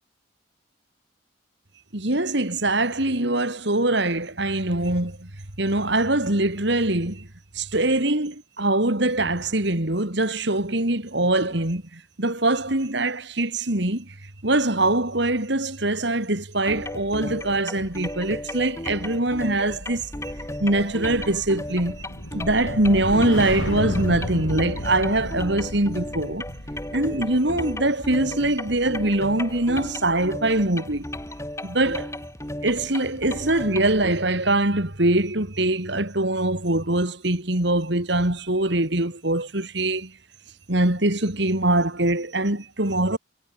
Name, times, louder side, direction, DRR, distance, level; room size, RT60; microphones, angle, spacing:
voice 1, 1.9-5.3 5.6-7.3 7.5-14.1 14.4-20.0 20.6-22.0 22.3-26.4 26.9-31.0 31.6-32.1 32.6-40.1 40.7-43.2, right 2 dB, 55° right, 3.0 m, -23 dB
sound 1, 16.7-34.1, left 1 dB, 15° left, 2.7 m, -35 dB
sound 2, 19.7-30.1 30.4-30.8, left 1 dB, 75° left, 5.0 m, -34 dB
head